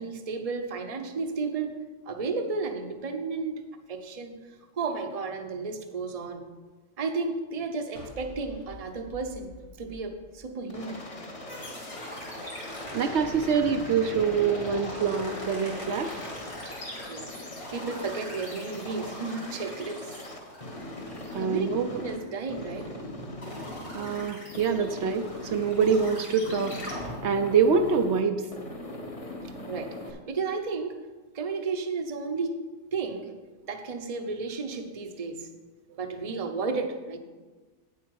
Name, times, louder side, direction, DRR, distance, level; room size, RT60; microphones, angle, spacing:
voice 1, 0.0-1.7 2.0-3.5 3.9-6.5 7.0-9.5 9.8-11.1 17.1-17.4 17.7-20.2 21.4-21.7 22.0-22.9 29.7-31.0 31.3-32.6 32.9-33.3 33.7-35.5 36.0-37.2, right 4 dB, 35° right, 6 dB, 0.8 m, -33 dB
sound 1, 7.9-11.2, right 1 dB, 90° left, 1.9 m, -47 dB
Aircraft, 10.7-22.2 22.5-24.2 24.5-26.1 26.4-28.2 28.5-30.1, left 1 dB, 30° left, 1.0 m, -41 dB
sound 2, 11.5-23.0 23.4-27.1, equal, 60° left, 3.1 m, -41 dB
voice 2, 12.9-16.1 21.3-22.0 23.9-26.8 27.2-28.5, right 6 dB, 70° right, 7 dB, 0.9 m, -25 dB
8.7 x 8.2 x 4.7 m, 1.3 s
omnidirectional pair, 1.2 m